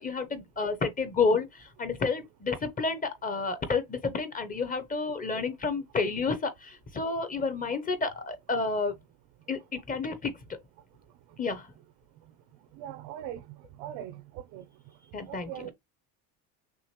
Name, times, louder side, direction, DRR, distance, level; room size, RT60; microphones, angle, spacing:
voice 1, 0.0-8.9 9.5-10.3 11.4-11.7 15.1-15.7, left 4 dB, 20° left, 0.8 m, -30 dB
voice 2, 12.7-14.6 15.3-15.7, right 11 dB, 75° right, 0.8 m, -41 dB
6.2 x 2.5 x 3.0 m
cardioid pair, 140°, 40 cm